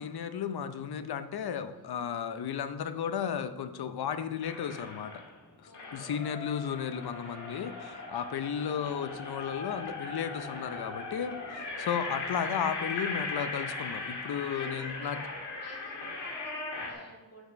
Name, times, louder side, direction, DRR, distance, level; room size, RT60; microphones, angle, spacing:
voice 1, 0.0-5.2 5.9-15.2, left 8 dB, 65° left, 11 dB, 0.7 m, -34 dB
voice 2, 1.7-2.2 5.7-6.3 7.2-7.6 8.5-8.9 14.5-15.3 15.6-17.5, left 1 dB, 40° left, -3 dB, 2.9 m, -53 dB
sound 1, 4.4-5.3 5.7-16.9, left 3 dB, 85° left, 2.1 m, -39 dB
7.5 x 6.1 x 5.2 m, 1.2 s
cardioid pair, 70°, 40 cm